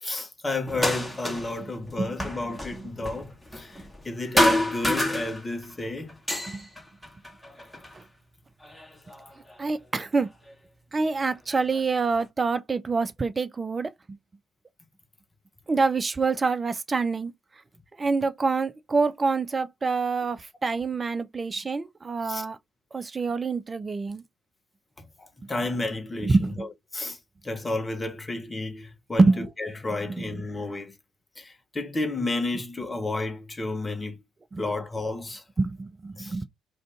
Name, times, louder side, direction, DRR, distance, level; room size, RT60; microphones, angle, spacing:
voice 1, 0.0-3.8 4.0-6.2 22.2-22.4 25.0-27.2 27.4-30.9 31.4-34.1 34.6-35.4 36.2-36.4, left 2 dB, 20° left, 0.9 m, -32 dB
sound 1, 0.7-1.6 1.9-4.1 4.4-5.7 6.1-8.0 8.6-9.5 10.5-10.6 11.2-12.2, left 1 dB, 5° left, 1.2 m, -28 dB
voice 2, 2.0-2.3 9.6-10.3 10.9-13.9 15.7-17.3 18.0-22.6 22.9-24.2 26.3-26.7 29.2-29.5 30.1-30.2 34.5-34.6 35.6-36.4, right 4 dB, 30° right, 0.5 m, -26 dB
2.5 x 2.5 x 3.3 m
figure-of-eight pair, 45°, 0 cm